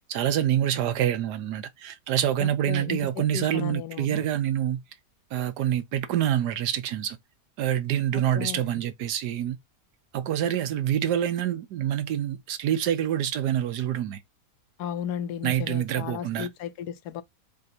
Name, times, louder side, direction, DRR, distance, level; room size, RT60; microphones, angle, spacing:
voice 1, 0.1-4.8 5.3-7.2 7.6-9.6 10.1-14.2 15.4-16.5, right 11 dB, 80° right, 1.3 m, -26 dB
voice 2, 2.4-4.2 8.1-8.7 14.8-17.2, left 9 dB, 80° left, 1.1 m, -35 dB
3.8 x 3.3 x 4.2 m
omnidirectional pair, 1.8 m